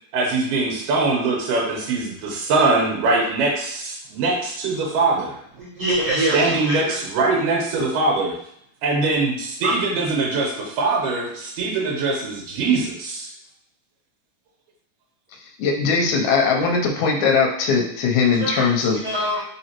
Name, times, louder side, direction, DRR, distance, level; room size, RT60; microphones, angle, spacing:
voice 1, 0.1-5.3 6.3-8.3 8.8-13.3, right 3 dB, 80° right, -1 dB, 2.5 m, -22 dB
voice 2, 5.6-7.0 9.6-9.7 18.4-18.7 18.9-19.4, right 1 dB, 60° right, -11 dB, 1.5 m, -24 dB
voice 3, 15.6-19.0, left 5 dB, 80° left, 2 dB, 1.8 m, -20 dB
4.9 x 3.1 x 2.8 m, 0.69 s
omnidirectional pair, 3.7 m